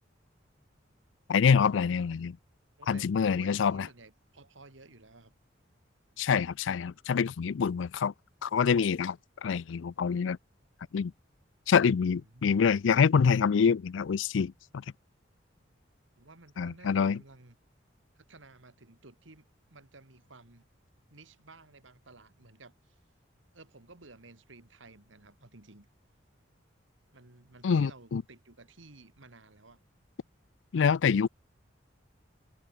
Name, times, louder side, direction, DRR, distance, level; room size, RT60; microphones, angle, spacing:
voice 1, 1.3-2.4 2.9-3.9 6.2-8.1 8.4-10.4 10.9-11.1 11.7-14.8 16.6-17.2 27.6-28.2 30.7-31.3, left 6 dB, 75° left, 0.4 m, -26 dB
voice 2, 2.8-5.3 12.0-12.5 16.2-17.6 18.1-20.6 21.1-23.0 23.5-25.9 27.1-29.8, right 3 dB, 80° right, 2.4 m, -55 dB
head